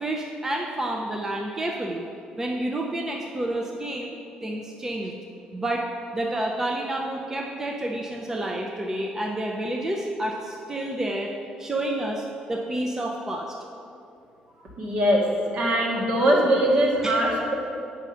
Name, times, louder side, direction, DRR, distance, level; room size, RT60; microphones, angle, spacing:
voice 1, 0.0-2.1 2.4-5.1 5.5-5.9 6.1-13.6 17.0-17.1, right 1 dB, 15° right, 1 dB, 0.6 m, -29 dB
voice 2, 14.8-17.5, right 1 dB, 65° right, -3 dB, 2.0 m, -22 dB
8.0 x 6.2 x 5.6 m, 2.6 s
cardioid pair, 115°, 3 cm